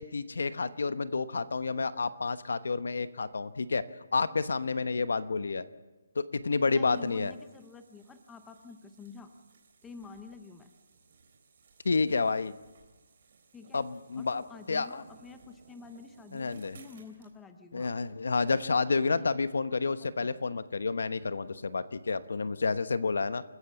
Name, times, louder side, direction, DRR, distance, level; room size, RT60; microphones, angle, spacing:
voice 1, 0.0-3.8 4.1-5.6 6.1-7.3 11.8-12.5 13.7-14.4 14.7-15.0 16.3-16.8 17.7-23.4, left 4 dB, 70° left, 13 dB, 1.1 m, -30 dB
voice 2, 6.7-9.3 9.8-10.7 13.5-13.8 14.1-17.9 19.2-19.3 20.0-20.3, left 4 dB, 5° left, 7 dB, 0.6 m, -48 dB
sound 1, 6.9-17.3, right 5 dB, 35° right, 3.4 m, -61 dB
28.0 x 14.5 x 7.1 m, 1.2 s
hypercardioid pair, 180°, 0 cm